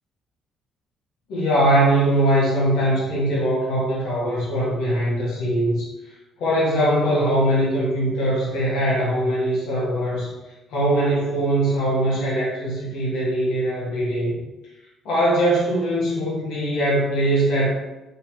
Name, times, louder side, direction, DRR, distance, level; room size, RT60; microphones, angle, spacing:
voice 1, 1.3-5.9 6.4-10.3 10.7-14.3 15.0-17.7, right 1 dB, 85° left, -7 dB, 1.2 m, -21 dB
3.3 x 3.2 x 2.9 m, 1.0 s
cardioid pair, 165°, 0 cm